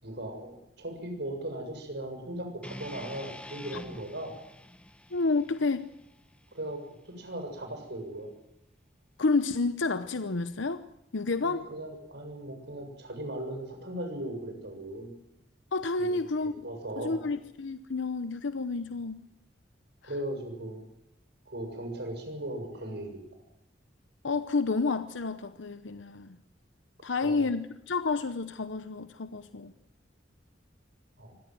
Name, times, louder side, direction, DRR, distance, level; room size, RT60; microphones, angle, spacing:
voice 1, 0.0-4.3 6.5-8.3 11.4-15.1 16.0-17.2 20.0-20.8 21.5-23.2 27.2-27.5 31.2-31.3, right 1 dB, 65° right, 5 dB, 7.2 m, -38 dB
sound 1, 2.6-6.8, left 1 dB, 5° left, 1.2 m, -47 dB
voice 2, 5.1-5.9 9.2-10.9 11.1-11.7 15.7-16.5 17.0-19.2 24.2-26.4 27.0-29.7, left 3 dB, 90° left, 12 dB, 0.9 m, -30 dB
25.0 x 17.5 x 7.6 m, 0.83 s
head